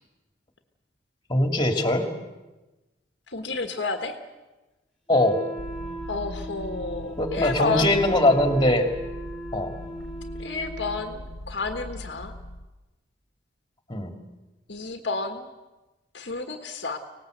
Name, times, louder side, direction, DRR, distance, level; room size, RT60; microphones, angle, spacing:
voice 1, 1.3-2.1 5.1-5.4 7.2-8.9 9.5-9.7 13.9-14.1, left 1 dB, 20° left, 5 dB, 2.6 m, -21 dB
voice 2, 3.3-4.2 6.1-7.9 10.4-12.3 14.7-15.5 16.1-17.0, left 3 dB, 65° left, 5 dB, 1.6 m, -30 dB
Wind instrument woodwind instrument, 5.1-11.0, right 2 dB, 5° left, 3.6 m, -39 dB
sound 1, 5.6-12.7, left 1 dB, 80° left, 1.2 m, -40 dB
25.0 x 19.0 x 8.0 m, 1.1 s
head